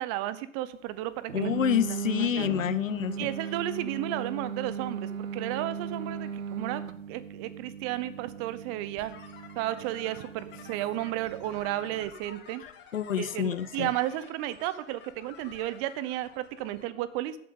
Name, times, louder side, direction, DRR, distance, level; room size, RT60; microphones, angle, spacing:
voice 1, 0.0-1.5 2.1-2.5 3.2-6.8 7.1-9.1 9.6-12.6 13.2-17.4, right 14 dB, 35° right, 15 dB, 0.8 m, -33 dB
voice 2, 1.3-3.3 12.9-13.9, left 9 dB, 80° left, 17 dB, 0.7 m, -28 dB
sound 1, 1.3-12.1, right 7 dB, 85° right, 0.7 m, -38 dB
sound 2, 9.0-16.9, left 6 dB, 25° left, 2.2 m, -51 dB
14.5 x 8.8 x 3.8 m, 0.71 s
figure-of-eight pair, 95°, 39 cm